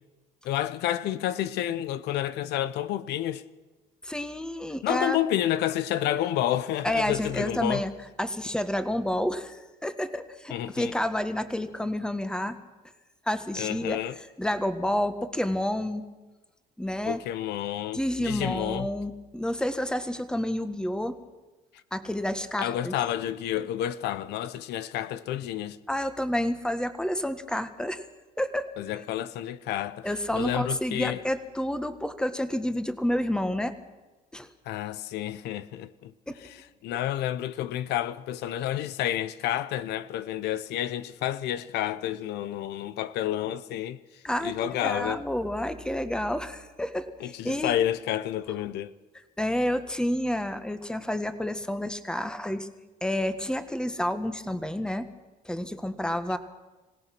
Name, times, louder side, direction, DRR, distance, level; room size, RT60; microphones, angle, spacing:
voice 1, 0.4-3.4 4.8-7.8 10.5-10.9 13.6-14.2 17.0-18.9 22.6-25.8 28.8-31.2 34.7-36.1 36.4-45.2 47.2-48.9, left 12 dB, 80° left, 0.9 m, -30 dB
voice 2, 4.0-5.2 6.8-7.9 8.2-12.6 13.3-14.0 14.4-16.1 16.8-17.2 17.9-21.2 21.9-22.9 25.9-28.0 28.4-28.7 30.0-33.7 34.3-34.5 36.3-36.4 44.2-47.8 49.4-52.7 53.0-55.1 55.5-56.4, left 1 dB, 5° left, 1.6 m, -29 dB
26.0 x 17.0 x 6.1 m
cardioid pair, 110°, 17 cm